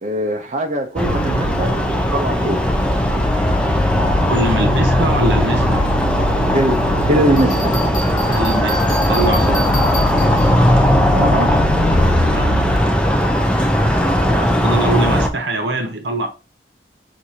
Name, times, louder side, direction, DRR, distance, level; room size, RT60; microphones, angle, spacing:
voice 1, 0.0-1.9 2.1-2.7 6.5-7.8 11.1-11.6, right 1 dB, 40° right, 0.5 m, -21 dB
sound 1, 1.0-15.3, equal, 5° left, 0.5 m, -17 dB
sound 2, 1.1-12.8, left 3 dB, 85° left, 0.4 m, -26 dB
voice 2, 4.3-5.9 8.3-9.7 12.3-13.2 13.7-16.3, right 2 dB, 80° right, 0.9 m, -24 dB
Bell, 7.4-10.7, equal, 50° left, 1.8 m, -32 dB
6.1 x 2.6 x 2.7 m
head